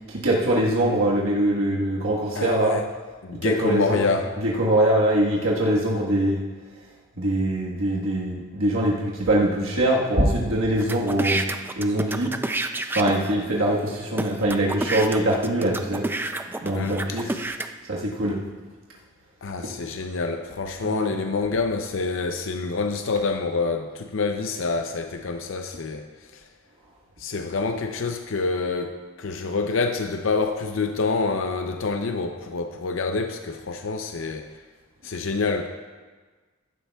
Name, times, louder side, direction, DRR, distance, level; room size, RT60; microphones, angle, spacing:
voice 1, 0.1-2.8 3.4-4.1 4.4-6.4 7.2-11.5 11.8-12.3 12.9-16.1 16.6-17.4 17.9-18.4 20.8-21.1, right 1 dB, 80° right, -4 dB, 1.5 m, -23 dB
voice 2, 2.3-2.8 3.2-4.4 16.7-17.2 19.4-26.1 27.2-34.5 35.0-35.7, left 4 dB, 70° left, 6 dB, 0.6 m, -27 dB
sound 1, 10.8-13.3 13.9-14.0 14.2-17.7, right 2 dB, 10° right, 0.4 m, -29 dB
15.0 x 12.0 x 2.3 m, 1.4 s
head